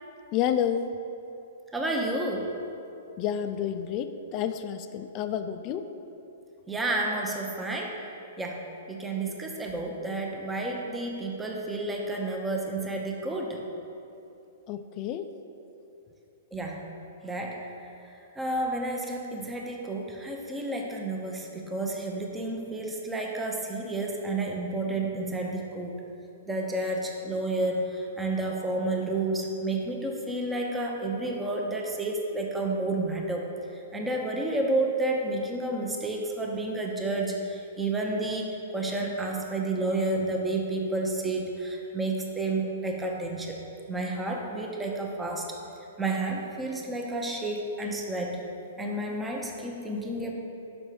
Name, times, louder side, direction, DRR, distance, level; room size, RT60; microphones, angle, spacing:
voice 1, 0.3-0.9 3.2-5.9 14.7-15.3, left 9 dB, 40° left, 9 dB, 0.3 m, -30 dB
voice 2, 1.7-2.5 6.7-8.0 8.4-13.6 16.5-16.8 17.2-17.6 18.4-26.0 26.5-33.5 33.9-43.6 43.9-45.5 46.0-48.4 48.8-50.3, right 2 dB, 10° right, 0 dB, 0.7 m, -30 dB
5.3 x 4.9 x 4.8 m, 2.7 s
hypercardioid pair, 120°, 0 cm